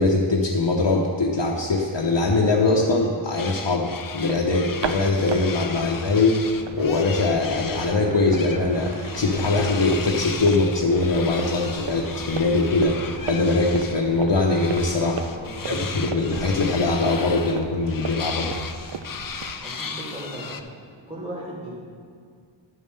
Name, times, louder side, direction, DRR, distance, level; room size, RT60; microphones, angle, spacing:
voice 1, 0.0-6.4 6.7-12.9 13.2-15.2 15.6-18.6, left 3 dB, 65° left, -2 dB, 0.9 m, -22 dB
sound 1, 3.4-8.0 8.3-14.0 14.5-20.6, left 5 dB, 45° left, 0.6 m, -36 dB
sound 2, 4.1-19.6, right 6 dB, 65° right, 0.6 m, -36 dB
voice 2, 15.4-15.8 19.6-20.6 21.1-21.7, right 1 dB, 10° right, -6 dB, 2.7 m, -36 dB
10.0 x 5.5 x 6.5 m, 2.2 s
wide cardioid pair, 45°, 47 cm